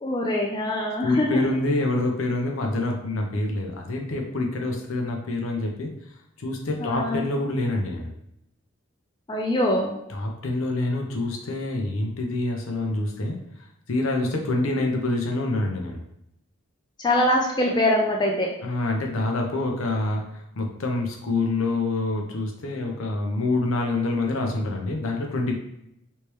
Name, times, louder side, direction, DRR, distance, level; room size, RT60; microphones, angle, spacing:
voice 1, 0.0-1.5 6.8-7.3 9.3-10.0 17.0-18.5, left 1 dB, 20° left, -1 dB, 0.4 m, -23 dB
voice 2, 1.0-5.9 6.4-8.1 10.1-13.4 13.9-16.0 18.6-25.5, left 2 dB, 70° left, 2 dB, 0.7 m, -26 dB
3.2 x 3.2 x 3.0 m, 0.79 s
head